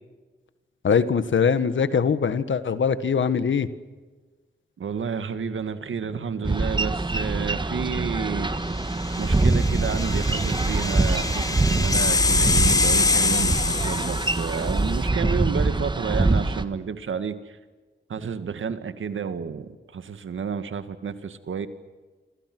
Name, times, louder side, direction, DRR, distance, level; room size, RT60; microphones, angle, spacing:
voice 1, 0.8-3.7, left 6 dB, 70° left, 13 dB, 1.7 m, -22 dB
voice 2, 4.8-8.5 9.2-17.6 18.1-21.7, right 6 dB, 75° right, 11 dB, 2.0 m, -30 dB
Boat Water vehicle, 6.4-16.6, right 2 dB, 20° right, 1.7 m, -24 dB
sound 1, 8.8-14.7, left 4 dB, 20° left, 3.0 m, -25 dB
28.0 x 25.5 x 6.2 m, 1.3 s
cardioid pair, 75°, 20 cm